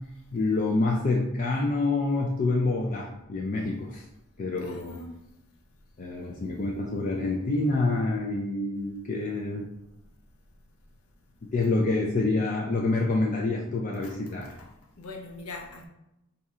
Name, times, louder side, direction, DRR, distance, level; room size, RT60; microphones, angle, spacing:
voice 1, 0.3-4.0 4.4-5.0 6.0-9.7 11.4-14.5, left 3 dB, 35° left, 0.3 m, -27 dB
voice 2, 4.6-5.1 6.2-6.6 14.0-14.2 14.6-14.7 15.0-15.9, left 2 dB, 80° left, 0.6 m, -42 dB
2.7 x 2.4 x 4.1 m
head